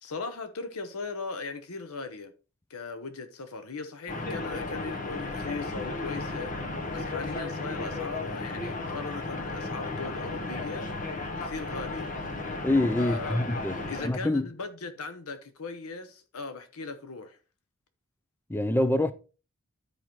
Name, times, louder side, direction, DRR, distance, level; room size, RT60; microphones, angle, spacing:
voice 1, 0.0-2.3 2.7-6.5 6.9-10.9 11.4-12.1 13.0-13.4 13.9-17.4, left 4 dB, 80° left, 0.8 m, -38 dB
sound 1, 4.1-14.1, left 2 dB, 35° left, 0.9 m, -34 dB
voice 2, 12.6-13.8 14.0-14.5 18.5-19.1, left 1 dB, 10° left, 0.3 m, -25 dB
12.5 x 4.9 x 3.0 m
head